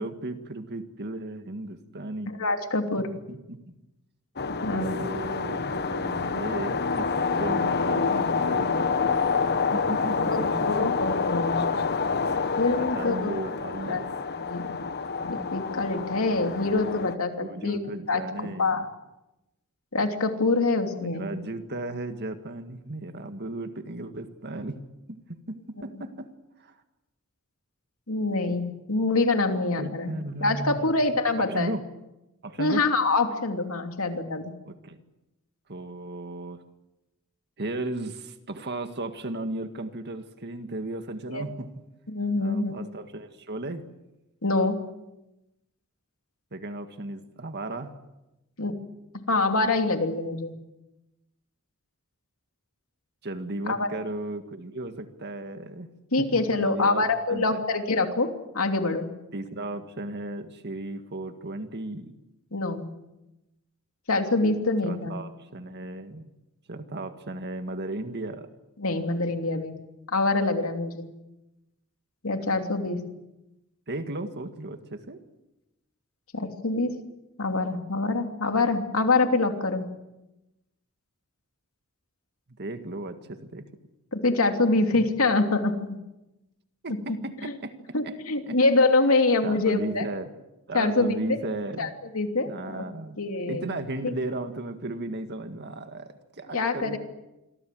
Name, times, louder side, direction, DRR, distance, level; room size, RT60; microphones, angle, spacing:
voice 1, 0.0-2.3 3.3-3.7 4.7-7.1 7.4-8.8 9.7-10.9 12.1-12.2 12.8-14.2 17.4-18.9 21.0-24.8 25.1-26.3 26.6-26.8 29.8-30.9 31.3-31.9 32.4-32.8 34.7-35.0 35.7-36.6 37.6-41.7 42.4-43.8 46.5-47.9 53.2-55.9 56.3-57.6 59.3-62.1 64.8-66.3 66.7-68.5 73.9-75.2 82.6-83.7 86.8-87.8 88.0-88.1 88.5-88.6 89.4-90.3 90.7-91.9 92.5-93.2 93.5-97.0, right 2 dB, 50° right, 8 dB, 1.8 m, -35 dB
voice 2, 2.3-3.1 4.6-5.0 10.3-11.7 12.6-13.3 13.9-14.0 14.5-14.8 15.2-17.8 18.1-18.2 18.6-18.9 19.9-21.3 28.1-30.1 30.4-31.7 32.6-34.5 41.3-41.4 42.1-42.7 44.4-44.8 48.6-48.7 49.3-50.5 53.7-53.9 56.1-59.1 62.5-62.8 64.1-65.2 68.8-69.7 70.1-71.1 72.2-73.0 76.3-76.9 77.4-79.9 84.1-86.0 87.4-87.5 87.9-90.0 90.7-91.4 91.8-92.8 93.2-93.7 94.0-94.1 96.5-97.0, left 3 dB, 70° left, 5 dB, 3.0 m, -25 dB
sound 1, 4.4-17.2, left 5 dB, 50° left, 1.2 m, -27 dB
27.5 x 23.0 x 7.7 m, 0.97 s
head